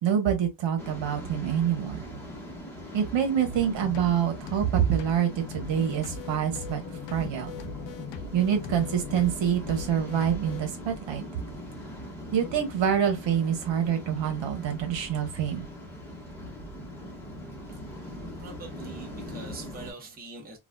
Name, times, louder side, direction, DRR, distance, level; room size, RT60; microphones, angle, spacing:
voice 1, 0.0-2.0 2.9-6.8 7.1-7.5 8.3-11.2 12.3-15.7, right 9 dB, 70° right, 1.2 m, -26 dB
Waves surf, 0.8-19.9, equal, 5° left, 1.1 m, -41 dB
sound 1, 3.5-10.6, left 6 dB, 70° left, 0.6 m, -41 dB
voice 2, 18.0-20.6, right 3 dB, 20° right, 1.0 m, -44 dB
4.0 x 2.5 x 2.3 m
cardioid pair, 150°, 46 cm